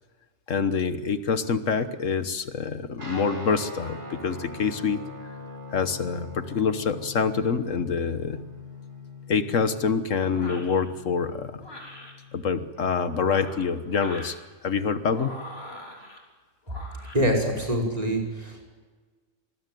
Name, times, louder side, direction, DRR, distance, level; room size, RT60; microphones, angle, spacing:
voice 1, 0.5-5.0 5.7-8.4 9.3-11.6 12.3-14.4 14.6-15.4, left 5 dB, 75° left, 11 dB, 1.6 m, -26 dB
Guitar, 3.0-12.8, left 2 dB, 60° right, 5.6 m, -42 dB
sound 1, 10.3-10.8 11.6-12.1 13.1-14.4 15.1-16.2 16.7-17.2, left 1 dB, 50° left, 4.1 m, -42 dB
voice 2, 17.1-18.6, equal, 30° right, 2 dB, 5.3 m, -25 dB
26.5 x 20.0 x 9.2 m, 1.4 s
omnidirectional pair, 1.3 m